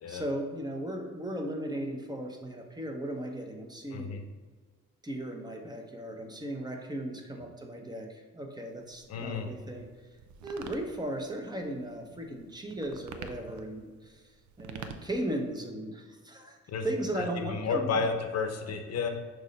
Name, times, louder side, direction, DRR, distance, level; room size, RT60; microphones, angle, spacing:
voice 1, 0.1-4.2 5.0-9.9 10.4-14.2 14.6-16.6 16.8-18.0 18.7-18.8, right 1 dB, 15° right, 3 dB, 1.0 m, -36 dB
sound 1, 8.7-15.6, right 6 dB, 75° right, 0.6 m, -48 dB
voice 2, 9.1-9.5 16.7-16.9 17.2-19.1, left 5 dB, 55° left, 6 dB, 0.9 m, -32 dB
6.2 x 3.2 x 5.4 m, 1.5 s
cardioid pair, 90°, 30 cm